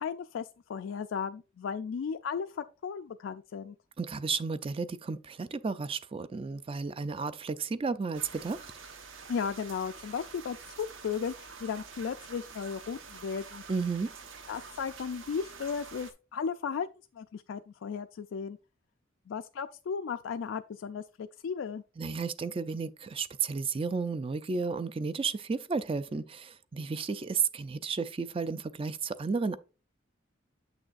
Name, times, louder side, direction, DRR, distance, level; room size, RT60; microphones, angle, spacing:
voice 1, 0.0-3.8 9.3-13.6 14.5-16.9 17.1-18.6 19.3-21.8, left 6 dB, 70° left, 0.3 m, -35 dB
voice 2, 4.0-8.7 13.7-14.1 22.0-29.6, right 4 dB, 25° right, 0.3 m, -33 dB
sound 1, 8.1-16.1, right 5 dB, 75° right, 1.1 m, -47 dB
7.7 x 6.2 x 2.5 m
head